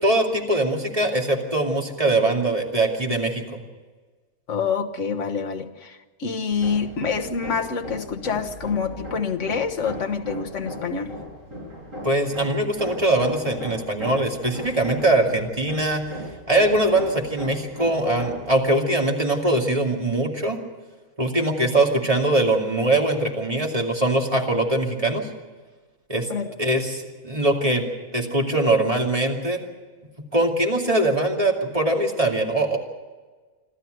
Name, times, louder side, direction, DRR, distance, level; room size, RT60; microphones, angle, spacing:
voice 1, 0.0-3.6 12.0-16.0 16.5-20.6 21.2-25.3 26.1-26.3 26.6-27.8 28.1-29.6 30.3-32.8, right 2 dB, 25° right, 0 dB, 2.5 m, -22 dB
voice 2, 4.5-11.1 26.3-26.5, left 5 dB, 55° left, 4 dB, 1.6 m, -27 dB
Hammer, 6.5-18.6, equal, 60° right, 6.8 m, -37 dB
27.0 x 12.5 x 7.9 m, 1.4 s
omnidirectional pair, 1.5 m